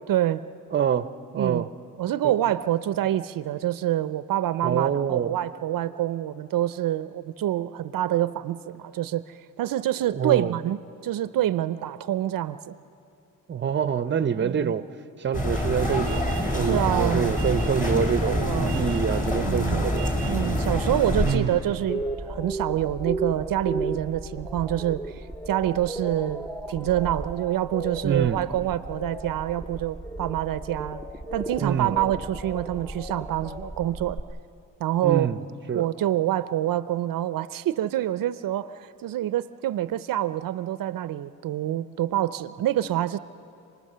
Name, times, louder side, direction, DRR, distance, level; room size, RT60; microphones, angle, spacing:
voice 1, 0.1-0.4 1.4-1.7 2.0-12.8 14.4-14.7 16.6-17.3 18.4-18.8 19.4-19.8 20.3-31.0 31.3-34.2 34.8-35.3 35.7-43.2, right 13 dB, 75° right, 14 dB, 0.6 m, -26 dB
voice 2, 0.7-1.7 2.2-2.3 4.6-5.4 10.1-10.5 13.5-14.9 15.2-20.1 21.2-21.6 28.0-28.4 31.6-31.9 35.0-35.4 35.7-35.9, right 7 dB, 35° right, 13 dB, 0.6 m, -26 dB
sound 1, 15.3-21.4, left 1 dB, 25° left, 4.0 m, -26 dB
sound 2, 21.9-34.2, right 2 dB, 5° left, 0.7 m, -35 dB
27.5 x 19.5 x 6.7 m, 2.6 s
cardioid pair, 100°, 34 cm